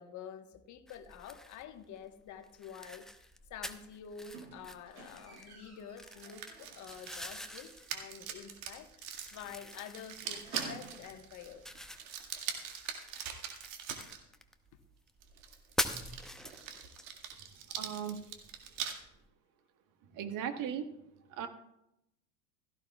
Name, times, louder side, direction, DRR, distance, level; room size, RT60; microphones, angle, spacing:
voice 1, 0.0-3.1 3.5-11.6, left 8 dB, 40° left, 1.4 m, -48 dB
sound 1, 0.9-19.3, left 1 dB, ahead, 0.7 m, -45 dB
Squeak, 4.3-7.1 7.4-7.8 8.1-8.2 8.6-8.7 8.9-9.1 9.3-11.2 12.0-12.1, right 3 dB, 80° right, 4.5 m, -50 dB
sound 2, 6.1-14.2 15.2-18.9, right 8 dB, 65° right, 2.1 m, -43 dB
voice 2, 17.8-18.2 20.1-20.9 21.3-21.5, right 8 dB, 45° right, 1.6 m, -37 dB
16.5 x 14.0 x 2.4 m
hypercardioid pair, 80°, 44 cm